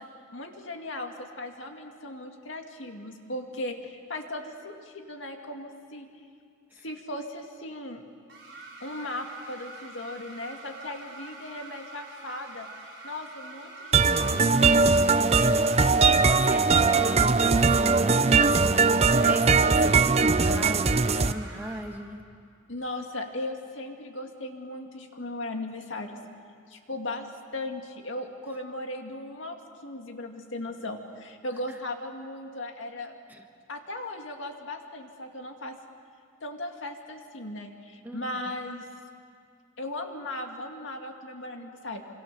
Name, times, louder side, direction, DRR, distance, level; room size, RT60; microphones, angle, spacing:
voice 1, 0.0-6.1 6.8-8.0 8.8-12.7 13.0-15.1 22.7-26.2 26.7-33.1 33.7-35.8 36.4-38.9 39.8-42.0, left 1 dB, 70° left, 4 dB, 2.3 m, -37 dB
sound 1, 8.3-21.8, right 3 dB, 60° right, 7.1 m, -45 dB
sound 2, 13.9-21.3, right 4 dB, 30° right, 0.6 m, -20 dB
voice 2, 15.2-22.2 31.7-31.8 33.3-33.4 38.0-38.3, right 1 dB, 10° right, 3 dB, 1.6 m, -37 dB
26.5 x 26.5 x 6.9 m, 2.3 s
head